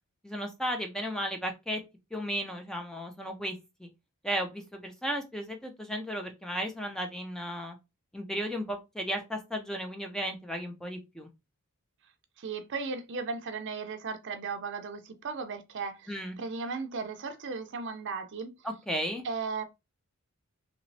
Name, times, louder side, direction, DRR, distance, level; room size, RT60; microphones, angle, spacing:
voice 1, 0.2-1.8 2.1-3.5 3.8-3.9 4.2-7.8 8.1-11.3 16.1-16.4 18.6-19.2, equal, 5° left, 0.5 m, -34 dB
voice 2, 12.4-18.5 19.2-19.6, right 4 dB, 55° right, 0.5 m, -36 dB
3.0 x 3.0 x 2.6 m
head